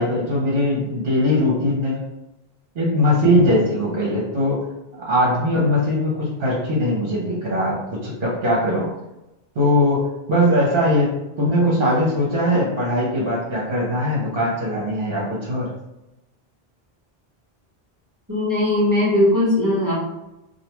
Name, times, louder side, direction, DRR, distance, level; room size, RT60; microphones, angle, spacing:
voice 1, 0.0-2.0 2.7-4.6 5.0-8.9 9.6-15.7, left 1 dB, 65° right, -5 dB, 0.9 m, -20 dB
voice 2, 18.3-19.9, left 1 dB, 20° right, -7 dB, 0.8 m, -19 dB
2.4 x 2.2 x 2.9 m, 0.95 s
omnidirectional pair, 1.1 m